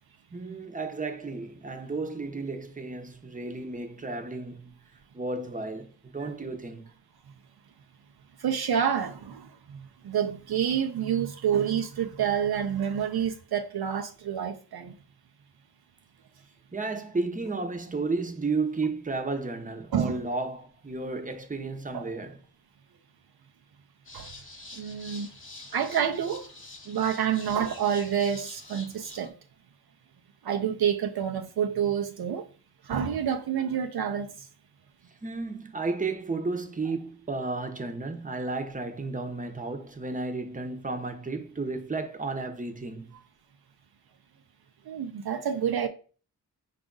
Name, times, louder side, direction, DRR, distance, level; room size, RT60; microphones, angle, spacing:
voice 1, 0.3-4.8 5.1-6.9 16.7-22.4 35.2-43.1, right 3 dB, 20° right, 0.7 m, -33 dB
voice 2, 8.4-14.9 19.9-20.2 21.9-22.1 24.1-24.3 24.8-25.3 25.7-26.4 26.9-29.3 30.4-32.5 32.9-34.3 44.9-45.9, right 8 dB, 65° right, 0.5 m, -28 dB
sound 1, 24.0-29.3, left 2 dB, 30° left, 1.0 m, -46 dB
4.9 x 2.4 x 3.8 m
cardioid pair, 50°, 40 cm